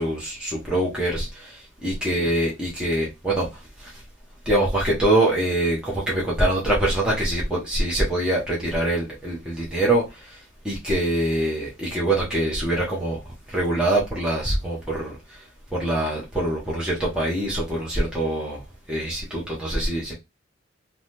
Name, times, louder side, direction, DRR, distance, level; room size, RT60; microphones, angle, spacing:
voice 1, 0.0-3.5 3.8-3.9 4.5-10.4 10.6-13.2 13.5-15.1 15.7-18.6 18.9-20.1, right 1 dB, 5° right, 0.8 m, -24 dB
3.4 x 2.1 x 2.8 m
head